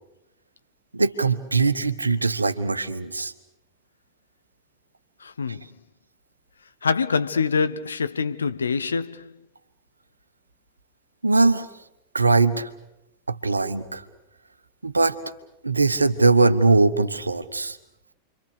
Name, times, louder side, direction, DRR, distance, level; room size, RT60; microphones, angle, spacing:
voice 1, 0.9-3.3 11.2-11.7 12.1-12.7 13.3-14.0 14.8-15.2 15.6-17.8, right 3 dB, 80° right, 1.2 m, -21 dB
voice 2, 5.2-5.6 6.8-9.3, left 5 dB, 75° left, 0.9 m, -25 dB
29.0 x 24.5 x 6.7 m
figure-of-eight pair, 90°, 0 cm